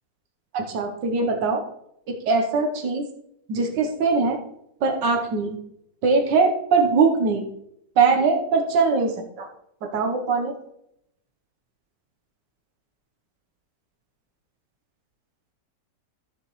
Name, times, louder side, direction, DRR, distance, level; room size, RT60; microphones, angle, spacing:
voice 1, 0.5-1.6 2.1-3.1 3.5-4.4 4.8-5.6 6.0-7.5 8.0-9.5 9.9-10.5, right 4 dB, 90° right, 3 dB, 1.7 m, -21 dB
14.5 x 6.9 x 3.1 m, 0.77 s
omnidirectional pair, 1.8 m